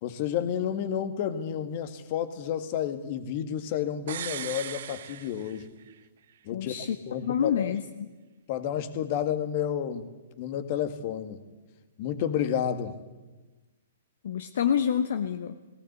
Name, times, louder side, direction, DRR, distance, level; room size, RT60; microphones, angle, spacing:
voice 1, 0.0-5.7 6.5-7.7 8.5-10.1 10.4-11.4 12.0-12.9, left 9 dB, 45° left, 10 dB, 1.9 m, -31 dB
sound 1, 4.1-6.0 6.3-6.4, right 10 dB, 60° right, 0.8 m, -38 dB
voice 2, 6.5-7.0 7.2-7.8 14.2-15.6, left 8 dB, 60° left, 9 dB, 1.0 m, -27 dB
18.5 x 17.5 x 8.2 m, 1.2 s
figure-of-eight pair, 115°, 0 cm